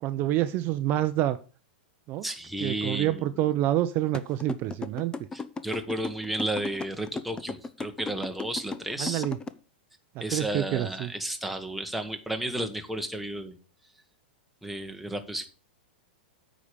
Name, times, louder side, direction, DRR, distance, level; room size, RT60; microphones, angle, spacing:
voice 1, 0.0-1.4 2.1-2.2 2.6-5.1 9.0-9.4 10.3-11.1, right 13 dB, 40° right, 11 dB, 0.7 m, -27 dB
voice 2, 2.2-3.5 5.3-9.2 10.2-13.6 14.6-15.5, right 1 dB, ahead, 5 dB, 1.3 m, -33 dB
sound 1, 4.1-9.5, left 4 dB, 15° left, 0.7 m, -35 dB
8.6 x 5.1 x 6.8 m, 0.36 s
hypercardioid pair, 120°, 6 cm